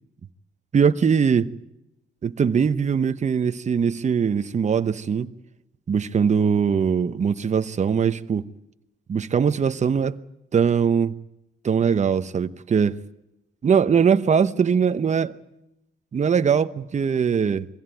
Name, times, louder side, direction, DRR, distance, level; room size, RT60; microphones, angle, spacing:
voice 1, 0.7-1.5 2.2-5.3 5.9-8.4 9.1-10.2 10.5-11.1 11.6-12.9 13.6-15.3 16.1-17.7, right 6 dB, 35° right, 0.9 m, -21 dB
22.5 x 16.5 x 9.2 m
cardioid pair, 90°, 20 cm